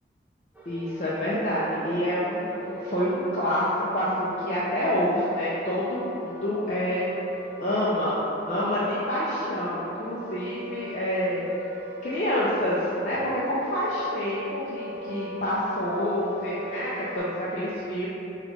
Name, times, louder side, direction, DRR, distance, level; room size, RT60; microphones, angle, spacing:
sound 1, 0.6-17.2, equal, 10° right, 0.4 m, -41 dB
voice 1, 0.7-7.1 7.6-8.2 8.5-11.5 12.0-18.1, equal, 40° left, -9 dB, 0.5 m, -27 dB
5.5 x 2.4 x 3.6 m, 3.0 s
head